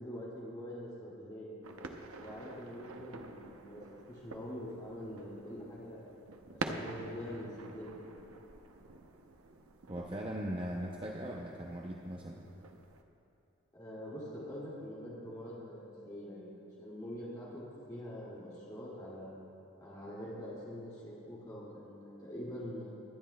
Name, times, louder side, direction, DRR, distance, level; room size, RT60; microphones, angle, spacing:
voice 1, 0.0-1.7 2.2-3.8 4.1-6.1 6.7-8.1 13.7-16.5 16.8-19.4 19.8-22.9, equal, 20° left, -8 dB, 2.2 m, -44 dB
sound 1, 1.6-13.0, right 3 dB, 90° right, 0.7 m, -47 dB
voice 2, 9.9-12.4, right 1 dB, 25° right, -1 dB, 0.6 m, -39 dB
24.5 x 9.9 x 2.2 m, 2.7 s
head